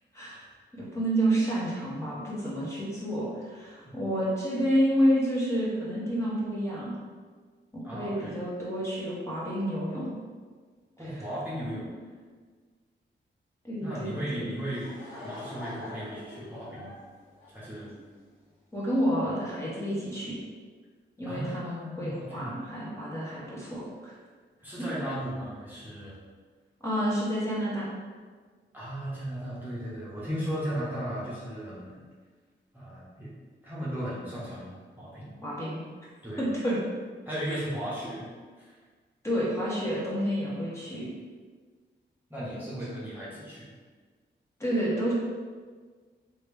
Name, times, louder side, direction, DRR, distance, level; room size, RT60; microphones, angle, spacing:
voice 1, 0.1-0.4 0.7-6.9 7.7-10.1 11.0-11.2 13.6-14.5 18.7-20.4 21.2-24.2 26.8-27.9 35.4-35.8 36.4-36.8 37.5-37.6 39.2-41.1 44.6-45.1, equal, 15° left, -8 dB, 1.3 m, -29 dB
voice 2, 7.8-8.4 11.0-11.9 13.8-14.9 15.2-16.9 17.5-17.9 21.2-22.5 24.6-26.1 28.7-32.0 32.7-33.3 33.6-35.4 36.2-36.5 37.2-38.3 38.6-38.8 42.3-43.7, equal, 10° right, -9 dB, 1.2 m, -36 dB
Laughter / Crowd, 14.4-18.2, left 1 dB, 80° left, 0.9 m, -43 dB
3.2 x 3.0 x 3.3 m, 1.5 s
cardioid pair, 55°, 20 cm